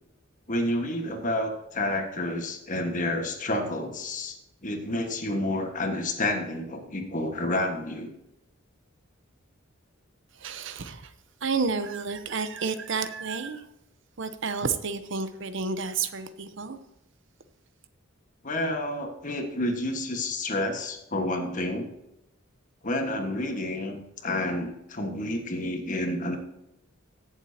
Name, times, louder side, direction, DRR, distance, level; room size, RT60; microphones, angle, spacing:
voice 1, 0.5-4.4 4.6-8.1 18.4-21.9 22.8-26.4, left 1 dB, 40° left, 1.5 m, -29 dB
voice 2, 10.4-11.1 11.4-13.6 14.2-16.8, right 4 dB, 60° right, 0.8 m, -30 dB
17.0 x 7.3 x 2.8 m
head